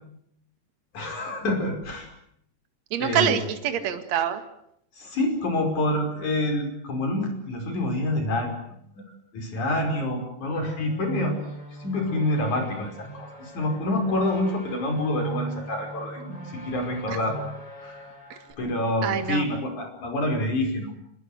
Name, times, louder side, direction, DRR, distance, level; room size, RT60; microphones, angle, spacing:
voice 1, 0.9-2.1 3.0-3.4 5.0-8.5 9.3-11.3 11.8-16.2 16.6-17.4 17.8-18.0 18.6-20.9, left 1 dB, 40° left, 4 dB, 6.4 m, -27 dB
voice 2, 2.9-4.4 17.1-17.2 19.0-19.5, right 9 dB, 50° right, 7 dB, 2.5 m, -25 dB
sound 1, 10.5-18.5, right 3 dB, 5° left, 6.4 m, -39 dB
27.5 x 20.0 x 8.1 m, 0.72 s
omnidirectional pair, 5.2 m